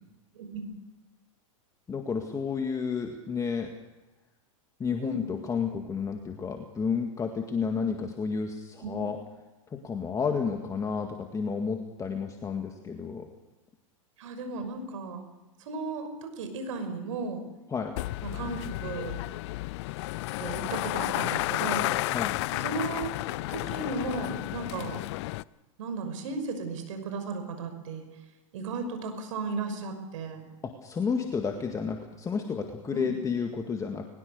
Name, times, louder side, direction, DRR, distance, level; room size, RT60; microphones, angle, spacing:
voice 1, 0.3-0.7 5.0-5.2 8.8-9.0 14.2-15.2 15.7-17.4 18.2-19.2 20.4-21.9 22.5-23.1 23.5-25.0 25.8-28.1 28.5-30.4 32.9-33.2, right 3 dB, 70° right, 7 dB, 5.9 m, -35 dB
voice 2, 1.9-3.7 4.8-9.2 9.7-13.3 17.7-17.9 22.1-22.4 30.6-34.0, left 5 dB, 20° left, 4 dB, 1.9 m, -31 dB
sound 1, 18.0-25.4, left 19 dB, 55° left, 0.6 m, -32 dB
21.5 x 20.5 x 6.7 m, 1.1 s
hypercardioid pair, 115°, 17 cm